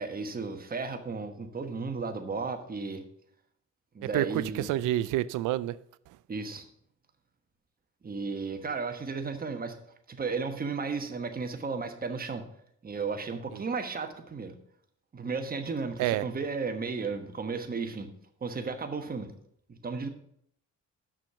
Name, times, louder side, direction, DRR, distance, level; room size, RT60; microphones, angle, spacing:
voice 1, 0.0-3.0 3.9-4.7 6.3-6.6 8.0-9.8 10.1-12.5 12.8-14.6 15.1-18.1 18.4-19.3 19.7-20.1, right 4 dB, 30° right, 1.2 m, -34 dB
voice 2, 4.1-5.7 16.0-16.2, right 14 dB, 90° right, 0.5 m, -28 dB
6.5 x 6.0 x 6.9 m
cardioid pair, 90°, 30 cm